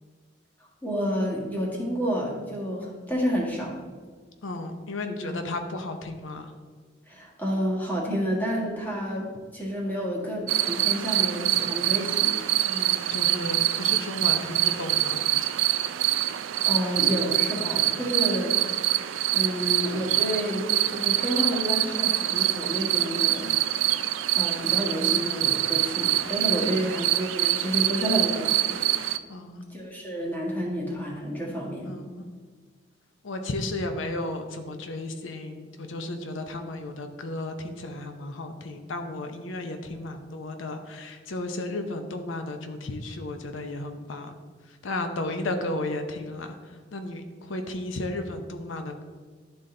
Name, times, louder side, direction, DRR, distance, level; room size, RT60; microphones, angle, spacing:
voice 1, 0.8-3.8 5.2-5.4 7.1-9.3 9.5-12.3 16.6-18.5 19.3-23.5 24.3-29.1 29.7-31.9, equal, 10° left, -4 dB, 1.6 m, -29 dB
voice 2, 4.4-6.5 12.6-15.2 26.6-27.0 29.3-29.7 31.8-32.3 33.2-44.3 44.7-49.0, left 2 dB, 90° left, 6 dB, 0.7 m, -34 dB
sound 1, 10.5-29.2, right 14 dB, 90° right, 0.4 m, -25 dB
11.5 x 4.0 x 3.8 m, 1.5 s
head